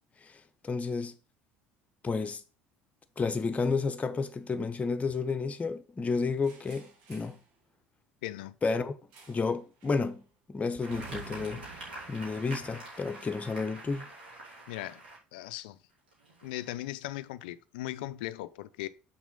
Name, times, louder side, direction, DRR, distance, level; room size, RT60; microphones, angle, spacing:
voice 1, 0.2-1.1 2.0-2.4 3.2-7.4 8.6-8.9 9.3-10.2 10.5-11.6 12.1-14.1, left 4 dB, 25° left, 1.0 m, -31 dB
sound 1, 6.4-7.5 9.1-9.5 9.8-10.1 10.9-13.2, right 5 dB, 65° right, 1.9 m, -50 dB
voice 2, 8.2-8.6 14.7-15.0 15.3-15.8 16.4-18.9, left 15 dB, 75° left, 0.5 m, -38 dB
sound 2, 10.8-15.2 15.9-16.7, right 1 dB, 90° right, 3.0 m, -46 dB
6.1 x 4.8 x 5.3 m
hypercardioid pair, 65°, 5 cm